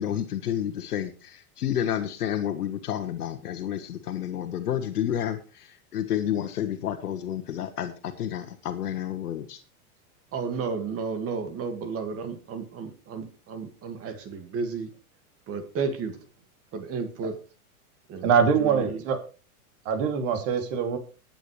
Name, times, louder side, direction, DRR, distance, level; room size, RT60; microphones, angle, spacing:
voice 1, 0.0-5.7 5.9-9.6, left 10 dB, 85° left, 7 dB, 1.4 m, -30 dB
voice 2, 10.3-14.9 15.5-16.2 16.7-17.4 18.1-18.3 18.6-19.0, right 5 dB, 30° right, 7 dB, 2.0 m, -32 dB
voice 3, 18.2-19.2 19.8-21.0, right 6 dB, 55° right, 6 dB, 2.9 m, -23 dB
20.5 x 9.0 x 3.2 m, 0.35 s
hypercardioid pair, 125°, 45 cm